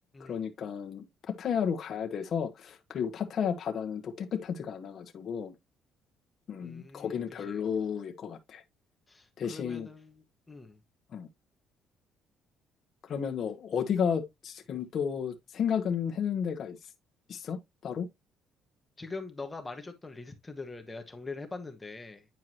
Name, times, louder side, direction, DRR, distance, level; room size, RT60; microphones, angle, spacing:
voice 1, 0.3-5.5 6.5-8.6 9.4-9.9 11.1-11.3 13.1-16.8 17.3-18.1, left 7 dB, 50° left, 1.2 m, -32 dB
voice 2, 6.6-7.2 7.4-7.6 9.1-10.8 19.0-22.3, left 3 dB, 15° left, 1.2 m, -43 dB
9.3 x 4.7 x 2.9 m
cardioid pair, 120°, 0 cm